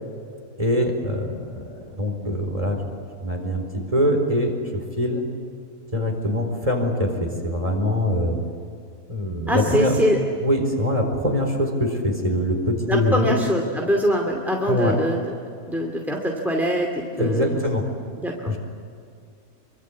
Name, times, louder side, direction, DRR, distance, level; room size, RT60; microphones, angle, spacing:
voice 1, 0.6-2.8 3.2-5.2 5.9-8.4 9.1-9.9 10.4-13.4 14.7-15.0 17.2-17.8 18.5-18.6, left 1 dB, 20° right, 3 dB, 4.3 m, -23 dB
voice 2, 9.5-10.2 12.9-15.3 15.7-17.6 18.2-18.5, equal, ahead, 0 dB, 2.4 m, -23 dB
26.0 x 24.0 x 8.5 m, 2.4 s
omnidirectional pair, 1.7 m